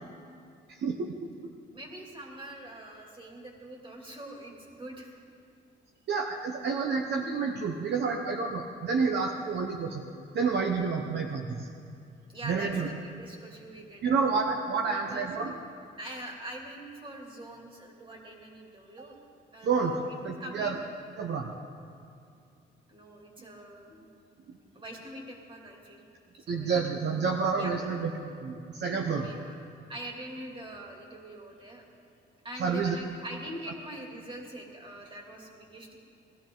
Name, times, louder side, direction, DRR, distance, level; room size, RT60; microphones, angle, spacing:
voice 1, 0.8-1.1 6.1-10.0 10.3-11.7 12.4-12.9 14.0-15.6 19.6-20.0 20.2-20.8 21.2-21.5 26.5-29.2 32.6-32.9, right 5 dB, 60° right, 2 dB, 1.0 m, -29 dB
voice 2, 1.7-5.1 12.3-14.2 14.8-15.5 16.0-19.2 19.5-20.8 22.9-24.1 24.7-26.0 26.4-26.7 27.5-27.7 29.2-29.6 29.9-31.8 32.4-36.0, right 1 dB, 25° right, -1 dB, 2.8 m, -43 dB
18.5 x 12.5 x 3.9 m, 2.4 s
cardioid pair, 90°, 20 cm